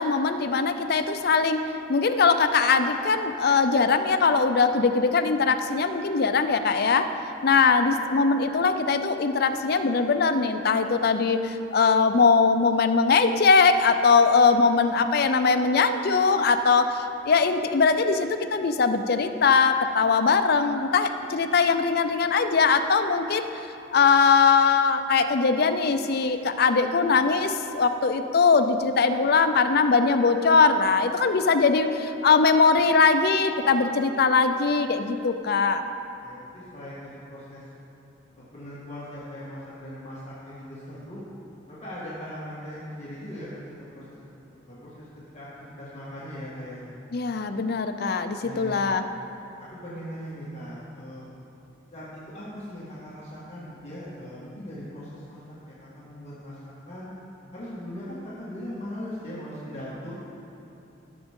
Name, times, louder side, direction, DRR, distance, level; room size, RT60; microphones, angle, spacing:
voice 1, 0.0-7.1 7.4-23.5 23.9-35.8 47.1-49.0, left 4 dB, 50° left, 8 dB, 0.5 m, -21 dB
voice 2, 36.2-37.6 38.5-41.2 41.7-43.5 43.9-44.0 44.7-45.1 45.3-45.5 45.8-46.9 48.4-48.8 49.6-51.3 51.9-57.1 57.5-60.2, equal, 30° left, -10 dB, 1.9 m, -39 dB
16.0 x 7.0 x 3.7 m, 2.9 s
head